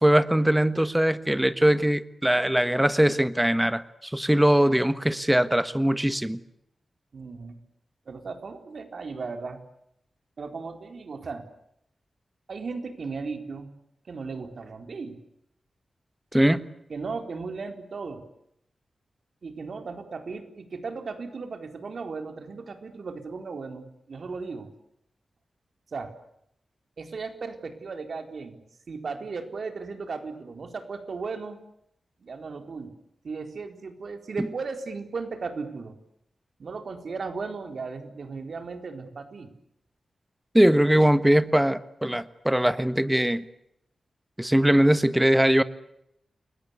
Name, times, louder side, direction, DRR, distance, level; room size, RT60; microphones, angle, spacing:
voice 1, 0.0-6.4 16.3-16.7 40.5-43.4 44.4-45.6, right 1 dB, 5° right, 13 dB, 1.4 m, -21 dB
voice 2, 7.1-7.6 8.1-9.6 10.4-11.4 12.5-13.7 14.0-15.2 16.9-18.2 19.4-24.7 25.9-26.1 27.0-31.6 32.2-33.0 33.2-36.0 36.6-39.5, right 4 dB, 60° right, 7 dB, 4.2 m, -36 dB
29.5 x 22.5 x 8.4 m, 0.76 s
wide cardioid pair, 135°, 0 cm